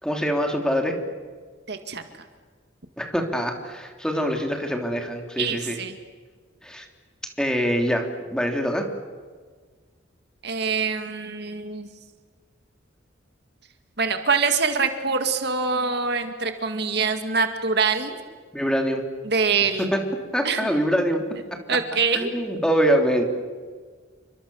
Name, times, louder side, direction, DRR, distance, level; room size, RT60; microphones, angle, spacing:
voice 1, 0.0-1.0 3.0-5.8 6.6-6.8 7.4-8.9 18.5-19.1 19.8-20.0 20.3-21.2 22.1-23.2, equal, 5° left, 3 dB, 3.4 m, -24 dB
voice 2, 1.7-2.0 5.4-6.0 10.4-11.9 14.0-18.2 19.2-19.9 20.4-20.7 21.7-22.3, right 5 dB, 55° right, 7 dB, 2.1 m, -24 dB
29.5 x 25.0 x 7.2 m, 1.5 s
head